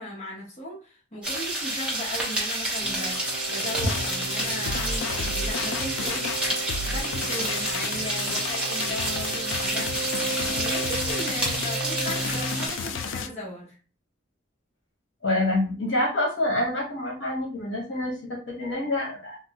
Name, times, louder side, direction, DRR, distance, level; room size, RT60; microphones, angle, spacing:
voice 1, 0.0-6.3 6.6-10.1 10.5-13.8, equal, 35° left, -4 dB, 1.0 m, -37 dB
sound 1, 1.2-12.9, right 1 dB, 5° right, 0.8 m, -30 dB
sound 2, 2.8-12.7, right 3 dB, 50° right, 0.8 m, -36 dB
sound 3, 3.5-13.3, left 5 dB, 90° left, 0.3 m, -33 dB
voice 2, 15.2-19.4, left 1 dB, 75° left, -1 dB, 1.0 m, -27 dB
3.4 x 2.1 x 2.8 m, 0.36 s
head